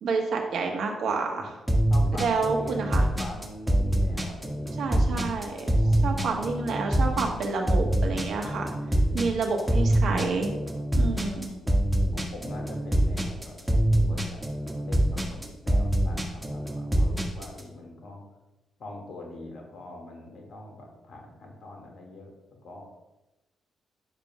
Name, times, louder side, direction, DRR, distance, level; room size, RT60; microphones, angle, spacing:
voice 1, 0.0-1.5 2.2-3.0 4.8-5.7 6.0-8.7 9.1-10.5 10.9-11.6, right 4 dB, 70° right, 2 dB, 1.3 m, -29 dB
sound 1, 1.7-17.6, right 1 dB, 10° right, 1.8 m, -25 dB
voice 2, 1.9-5.2 5.8-6.1 8.5-9.9 10.9-11.9 12.1-13.6 14.0-14.4 14.8-18.2 18.8-22.3 22.6-22.9, left 2 dB, 65° left, 1 dB, 2.0 m, -43 dB
10.5 x 7.0 x 2.3 m, 1.0 s
hypercardioid pair, 45°, 0 cm